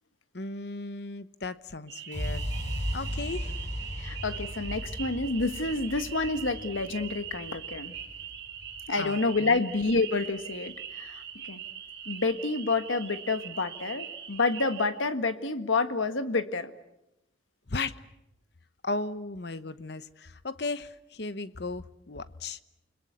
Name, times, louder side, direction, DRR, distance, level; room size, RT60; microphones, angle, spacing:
voice 1, 0.3-2.4 2.9-3.5 9.0-9.6 17.7-18.0 18.8-22.6, left 3 dB, 55° left, 13 dB, 1.0 m, -36 dB
sound 1, 1.9-14.9, right 9 dB, 55° right, 3.3 m, -42 dB
sound 2, 2.1-10.0, equal, 35° left, 4.2 m, -37 dB
voice 2, 4.0-7.9 8.9-11.6 12.0-16.7, left 3 dB, 85° left, 9 dB, 1.6 m, -29 dB
29.5 x 21.5 x 8.2 m, 0.89 s
head